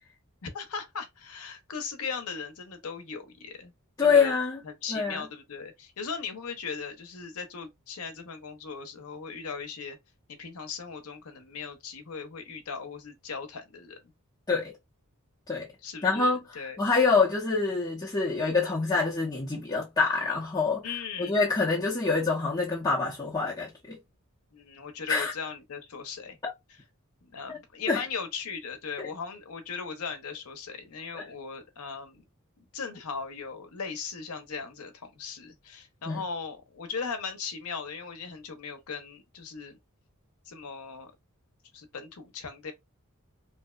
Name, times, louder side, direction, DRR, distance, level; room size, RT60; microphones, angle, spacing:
voice 1, 0.4-3.7 4.0-4.4 4.6-10.0 10.3-14.0 15.8-16.8 20.8-21.4 24.5-26.4 27.2-32.2 32.7-39.8 40.5-41.1 41.7-42.7, left 5 dB, 80° left, 0.7 m, -38 dB
voice 2, 4.0-4.6 4.9-5.2 14.5-14.7 15.5-15.7 16.0-20.8 21.2-24.0 25.1-25.3 26.4-26.5 27.5-27.6 27.9-28.0 29.0-29.1 31.1-31.2 36.1-36.2, left 4 dB, 20° left, 0.7 m, -26 dB
2.7 x 2.1 x 2.3 m
head